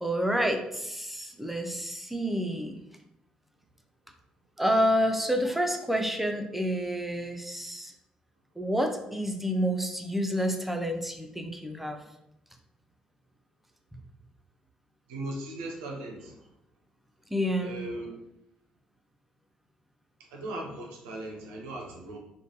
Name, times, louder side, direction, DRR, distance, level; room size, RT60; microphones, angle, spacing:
voice 1, 0.0-2.8 4.6-7.9 8.6-12.0 13.9-14.0 17.3-17.8, equal, 5° right, 4 dB, 0.5 m, -29 dB
voice 2, 15.1-16.3 17.6-18.1 20.3-22.2, right 1 dB, 70° right, 0 dB, 0.5 m, -38 dB
3.1 x 2.1 x 2.8 m, 0.83 s
figure-of-eight pair, 40°, 3 cm